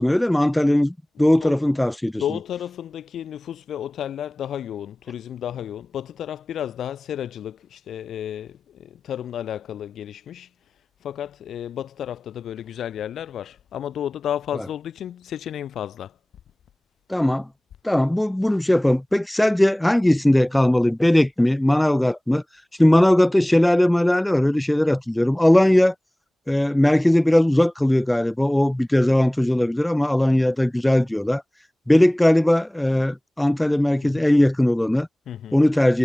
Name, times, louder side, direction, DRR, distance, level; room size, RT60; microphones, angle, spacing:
voice 1, 0.0-2.2 17.1-17.5 17.8-22.4 22.8-25.9 26.5-31.4 31.9-35.1 35.5-36.0, left 1 dB, 5° left, 3.0 m, -19 dB
voice 2, 2.2-10.5 11.0-16.2 34.0-34.3 35.3-35.6, left 10 dB, 70° left, 2.7 m, -32 dB
cardioid pair, 90°, 0 cm